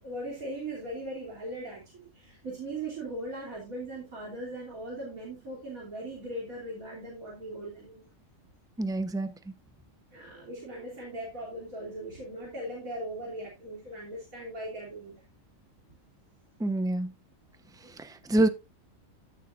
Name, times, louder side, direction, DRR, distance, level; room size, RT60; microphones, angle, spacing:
voice 1, 0.0-8.1 10.1-15.2 17.8-18.0, right 1 dB, 85° right, 3.6 m, -39 dB
voice 2, 8.8-9.3 16.6-17.1 18.0-18.5, right 2 dB, 5° right, 0.7 m, -26 dB
15.0 x 6.9 x 2.6 m
omnidirectional pair, 1.4 m